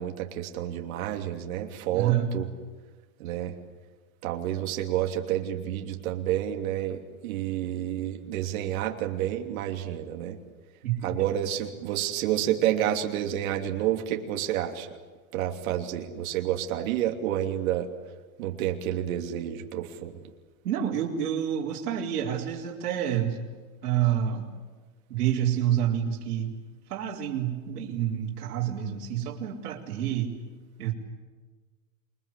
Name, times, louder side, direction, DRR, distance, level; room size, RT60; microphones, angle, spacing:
voice 1, 0.0-2.5 3.2-3.5 4.2-10.4 11.0-14.9 15.3-17.9 18.4-20.1, right 11 dB, 65° right, 3 dB, 3.1 m, -29 dB
voice 2, 1.9-2.3 10.8-11.2 20.6-23.4 23.8-24.5 25.1-26.5 26.9-30.3 30.8-30.9, right 10 dB, 85° right, -4 dB, 4.5 m, -28 dB
28.0 x 23.0 x 8.5 m, 1.4 s
supercardioid pair, 165°, 45 cm